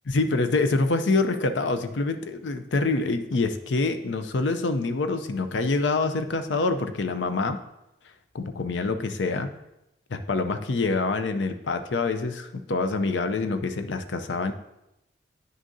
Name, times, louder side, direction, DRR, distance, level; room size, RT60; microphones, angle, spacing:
voice 1, 0.1-7.6 8.3-9.5 10.1-14.5, left 3 dB, 85° left, 9 dB, 0.6 m, -26 dB
9.2 x 6.3 x 2.7 m, 0.88 s
head